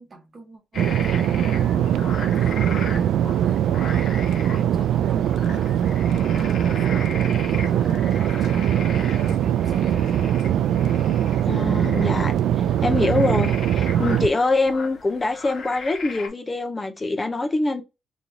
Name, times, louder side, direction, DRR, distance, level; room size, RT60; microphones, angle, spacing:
voice 1, 0.0-6.1 6.3-10.4, right 3 dB, 40° right, 1.3 m, -44 dB
sound 1, 0.7-16.3, left 4 dB, 60° left, 1.2 m, -38 dB
sound 2, 0.8-14.3, right 10 dB, 75° right, 0.3 m, -21 dB
voice 2, 11.5-17.8, left 3 dB, 25° left, 0.6 m, -24 dB
3.0 x 2.7 x 3.7 m
cardioid pair, 90°, 0 cm